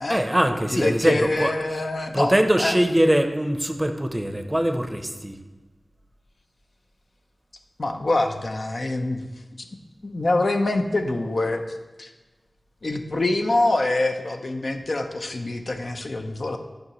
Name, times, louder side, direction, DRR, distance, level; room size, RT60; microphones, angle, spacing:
voice 1, 0.1-1.5 2.1-5.4, equal, 15° right, 7 dB, 0.6 m, -22 dB
voice 2, 0.7-2.3 2.6-2.8 7.8-9.3 10.0-12.1 12.8-16.6, left 2 dB, 65° left, 5 dB, 0.6 m, -25 dB
9.5 x 5.7 x 3.0 m, 1.2 s
wide cardioid pair, 65°, 0 cm